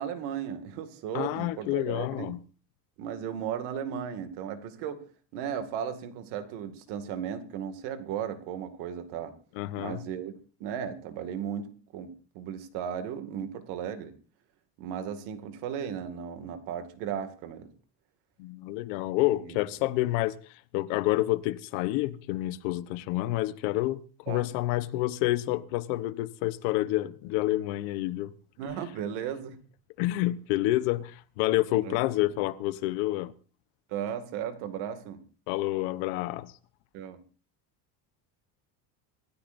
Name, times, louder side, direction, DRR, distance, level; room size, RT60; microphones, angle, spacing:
voice 1, 0.0-2.3 3.0-5.0 5.3-9.3 9.7-10.3 10.6-14.1 14.8-17.7 19.4-19.6 24.3-24.5 28.6-29.6 31.8-32.3 33.9-35.2 36.9-37.2, right 8 dB, 65° right, 2.3 m, -35 dB
voice 2, 1.1-2.4 9.6-10.0 18.4-20.3 20.7-28.3 30.0-33.3 35.5-36.5, left 17 dB, 75° left, 1.1 m, -28 dB
26.0 x 13.5 x 2.6 m
cardioid pair, 170°, 43 cm